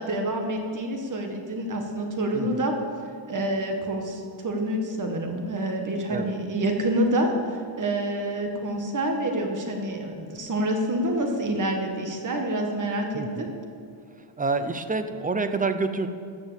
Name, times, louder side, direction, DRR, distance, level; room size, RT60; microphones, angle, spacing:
voice 1, 0.0-2.8 3.3-13.5, right 1 dB, 40° right, 3 dB, 1.6 m, -27 dB
voice 2, 2.3-2.6 6.1-6.3 13.1-13.4 14.4-16.1, right 3 dB, 20° right, 9 dB, 0.6 m, -28 dB
14.0 x 6.2 x 7.4 m, 2.2 s
cardioid pair, 135°, 48 cm